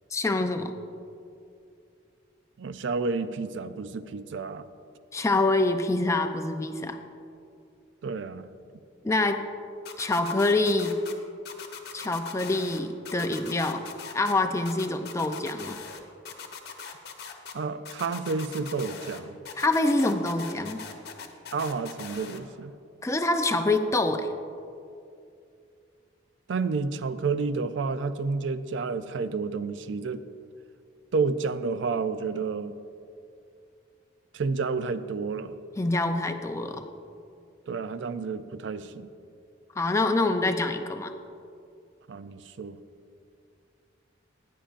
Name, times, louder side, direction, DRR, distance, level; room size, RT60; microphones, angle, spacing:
voice 1, 0.1-0.7 5.1-7.0 9.0-9.4 10.0-11.0 11.9-13.9 14.1-15.8 19.6-20.8 23.0-24.3 35.8-36.9 39.8-41.1, left 2 dB, 15° left, 7 dB, 0.4 m, -26 dB
voice 2, 2.6-4.6 8.0-8.5 17.5-19.4 21.5-22.7 26.5-30.2 31.1-32.7 34.3-35.5 37.7-39.1 42.1-42.8, right 4 dB, 70° right, 13 dB, 0.4 m, -30 dB
sound 1, 9.8-11.1 11.4-12.8 13.0-14.3 14.6-16.0 16.2-17.5 17.8-19.2 19.4-22.4, left 6 dB, 55° left, 0.9 m, -41 dB
15.5 x 10.0 x 2.5 m, 2.5 s
head